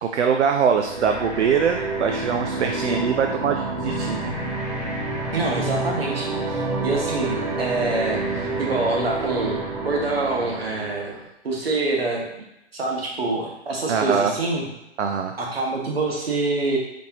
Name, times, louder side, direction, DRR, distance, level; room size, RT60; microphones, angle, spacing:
voice 1, 0.0-4.4 13.9-14.3 15.0-15.3, right 7 dB, 70° right, 4 dB, 0.5 m, -23 dB
sound 1, 0.7-11.2, right 2 dB, 30° right, 1.1 m, -28 dB
voice 2, 5.3-11.1 11.4-12.3 12.7-14.7 15.4-16.8, right 3 dB, 55° right, -2 dB, 1.2 m, -26 dB
4.2 x 3.1 x 2.9 m, 0.86 s
hypercardioid pair, 175°, 36 cm